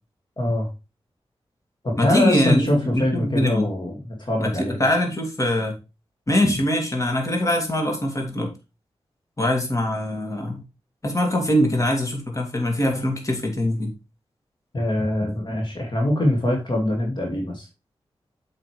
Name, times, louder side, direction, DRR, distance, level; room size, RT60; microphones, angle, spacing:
voice 1, 0.4-0.7 1.8-4.8 14.7-17.7, left 1 dB, 45° left, 2.4 m, -23 dB
voice 2, 2.0-3.7 4.4-5.7 6.3-8.5 9.4-10.6 11.0-13.9, left 1 dB, 30° left, 2.7 m, -23 dB
7.8 x 5.8 x 3.3 m
cardioid pair, 60°, 10 cm